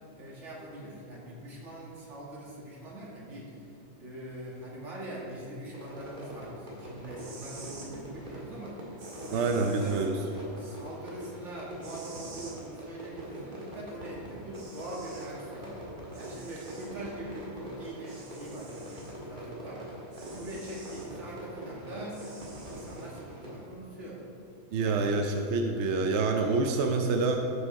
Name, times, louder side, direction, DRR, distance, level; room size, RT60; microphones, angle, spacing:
voice 1, 0.1-3.6 4.0-8.8 9.2-10.1 10.6-15.7 16.1-19.9 20.4-22.2 22.6-24.2 24.8-25.0, right 1 dB, 45° right, -4 dB, 2.3 m, -42 dB
Fireworks, 5.7-23.6, right 1 dB, 30° right, 2.3 m, -44 dB
sound 1, 7.2-7.9 9.0-10.1 11.8-12.6 14.1-14.2 14.5-15.3 16.1-16.9 18.1-19.1 20.1-21.1 22.1-23.1, right 3 dB, 80° right, 2.2 m, -50 dB
voice 2, 9.3-10.2 24.7-27.4, right 3 dB, 60° right, 3 dB, 0.7 m, -27 dB
12.5 x 6.4 x 4.5 m, 2.7 s
omnidirectional pair, 1.8 m